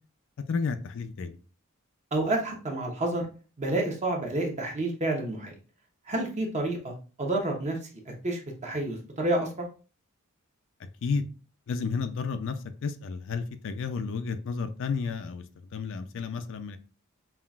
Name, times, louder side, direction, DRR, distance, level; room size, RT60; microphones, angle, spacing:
voice 1, 0.5-1.4 11.0-11.3 11.7-15.4 15.7-16.8, left 5 dB, 60° left, 9 dB, 0.4 m, -31 dB
voice 2, 2.1-3.2 3.6-5.6 6.1-7.8 8.2-9.7, right 2 dB, 35° right, 1 dB, 0.9 m, -29 dB
5.5 x 2.4 x 2.3 m, 0.35 s
head